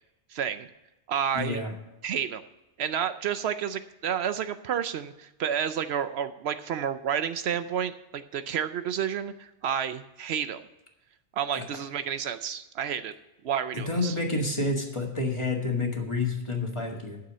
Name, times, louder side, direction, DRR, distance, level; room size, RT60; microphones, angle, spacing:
voice 1, 0.3-0.7 1.1-1.6 2.0-2.4 2.8-10.6 11.4-13.1 13.4-14.2, right 8 dB, 70° right, 12 dB, 0.8 m, -30 dB
voice 2, 1.3-1.7 11.6-11.7 13.7-17.2, left 2 dB, 25° left, 1 dB, 1.8 m, -29 dB
9.6 x 6.8 x 7.3 m, 0.96 s
omnidirectional pair, 1.1 m